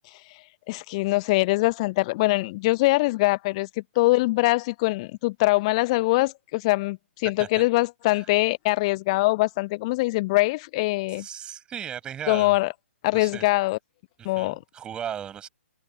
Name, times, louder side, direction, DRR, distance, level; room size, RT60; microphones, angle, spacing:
voice 1, 0.7-3.7 4.0-11.3 12.3-12.7 13.0-13.8 14.2-14.6, left 22 dB, 30° left, 0.8 m, -23 dB
voice 2, 11.2-12.6 13.1-13.4 14.4-15.5, right 9 dB, 15° right, 5.9 m, -36 dB
open air
figure-of-eight pair, 130°, 7 cm